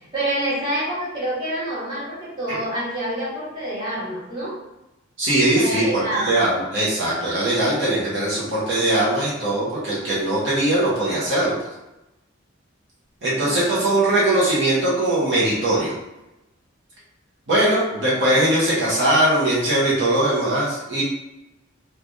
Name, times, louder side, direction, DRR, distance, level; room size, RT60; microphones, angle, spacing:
voice 1, 0.1-4.5 5.5-6.3 13.3-13.8 17.9-18.0, right 1 dB, 25° right, -10 dB, 1.2 m, -27 dB
voice 2, 5.2-11.5 13.2-15.9 17.5-21.0, right 1 dB, 65° right, -8 dB, 0.9 m, -20 dB
3.2 x 2.4 x 2.5 m, 0.96 s
head